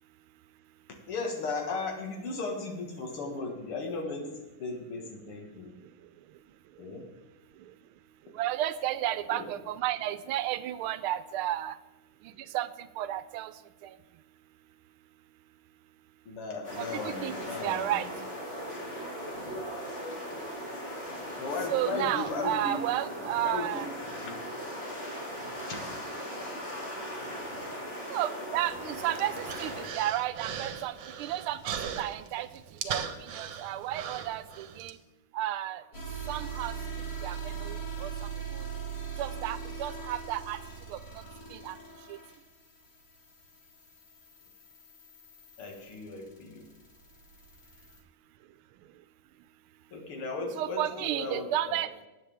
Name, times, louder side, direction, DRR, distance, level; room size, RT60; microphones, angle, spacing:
voice 1, 1.1-5.7 6.8-7.1 9.3-9.4 16.3-17.8 21.4-22.8 23.4-23.7 24.2-24.4 25.7-25.8 45.6-46.6 49.9-51.8, left 3 dB, 90° left, 2 dB, 2.6 m, -36 dB
voice 2, 8.3-11.8 12.2-13.5 13.8-14.0 16.8-17.3 17.6-18.1 21.7-23.9 28.1-32.5 32.8-35.0 35.3-35.8 36.3-36.8 37.2-38.1 38.5-38.7 39.2-40.6 40.9-41.0 41.5-41.8 42.1-42.2 50.5-51.9, right 13 dB, 80° right, 14 dB, 1.4 m, -32 dB
sound 1, 16.6-29.9, equal, 30° left, 2.9 m, -38 dB
Human voice, 28.6-34.9, right 7 dB, 65° right, 1.5 m, -39 dB
sound 2, 35.9-48.0, right 6 dB, 65° left, 3.0 m, -41 dB
19.5 x 8.0 x 3.5 m, 1.1 s
omnidirectional pair, 2.4 m